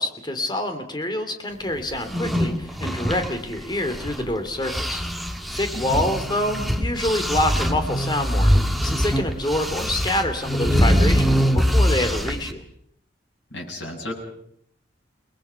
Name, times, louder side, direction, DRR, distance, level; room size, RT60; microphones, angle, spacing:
voice 1, 0.0-5.0 5.5-8.5 8.8-12.6, left 1 dB, 25° left, 7 dB, 2.6 m, -26 dB
sound 1, 1.9-4.3 4.6-12.5, equal, ahead, 1.4 m, -23 dB
voice 2, 13.5-14.2, left 1 dB, 90° left, -1 dB, 7.2 m, -34 dB
29.5 x 20.0 x 5.8 m, 0.67 s
head